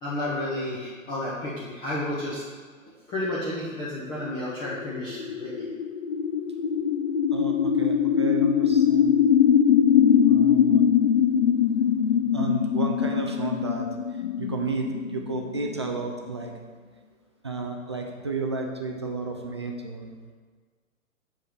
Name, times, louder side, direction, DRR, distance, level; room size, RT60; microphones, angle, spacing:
voice 1, 0.0-2.4 3.1-5.7, left 1 dB, 10° left, -8 dB, 0.7 m, -31 dB
sound 1, 4.2-16.3, left 8 dB, 45° left, 0.4 m, -22 dB
voice 2, 7.3-9.2 10.2-10.9 12.3-13.9 14.4-16.5 17.4-20.3, right 3 dB, 20° right, 1 dB, 0.3 m, -32 dB
7.1 x 4.4 x 5.1 m, 1.5 s
figure-of-eight pair, 120°, 41 cm